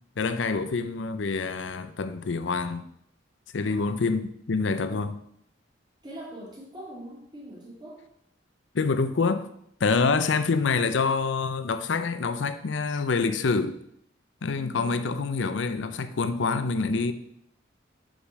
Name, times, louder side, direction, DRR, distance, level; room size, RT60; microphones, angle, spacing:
voice 1, 0.2-2.8 3.5-5.2 8.7-9.5 9.8-13.8 14.4-17.1, left 4 dB, 75° left, 0.6 m, -26 dB
voice 2, 3.6-4.0 6.0-8.0, equal, 25° right, 2.2 m, -42 dB
5.2 x 5.0 x 6.4 m
head